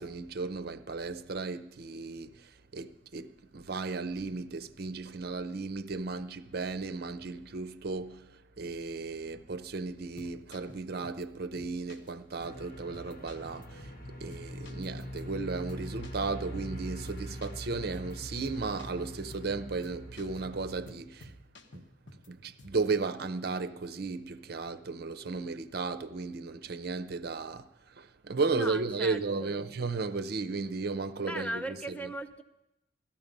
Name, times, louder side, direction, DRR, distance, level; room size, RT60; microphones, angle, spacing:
voice 1, 0.0-13.9 14.2-21.3 21.7-21.8 22.3-32.1, right 4 dB, 60° right, 0.6 m, -35 dB
sound 1, 10.0-11.3 11.6-12.1 12.4-12.5 12.9-14.0 14.3-16.8 17.1-17.6 17.9-18.1 18.4-19.5 19.8-20.4 20.7-22.3 22.6-22.9, left 1 dB, 80° left, 1.3 m, -52 dB
sound 2, 12.4-20.9, equal, 55° left, 2.9 m, -43 dB
voice 2, 28.5-29.7 31.2-32.4, right 1 dB, 10° left, 0.7 m, -38 dB
15.5 x 13.5 x 5.3 m
head